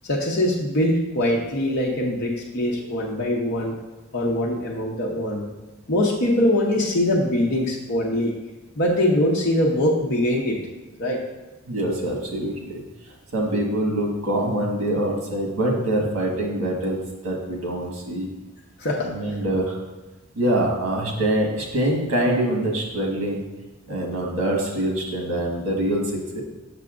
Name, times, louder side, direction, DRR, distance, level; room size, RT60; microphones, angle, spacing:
voice 1, 0.0-3.8 4.1-5.4 5.9-8.3 8.8-10.6 11.0-11.2 18.8-19.1, left 1 dB, 55° left, -3 dB, 0.8 m, -22 dB
voice 2, 11.6-12.8 13.3-18.3 19.0-19.7 20.3-23.4 23.9-26.4, right 1 dB, 75° right, -1 dB, 1.5 m, -24 dB
6.8 x 6.5 x 2.5 m, 1.2 s
head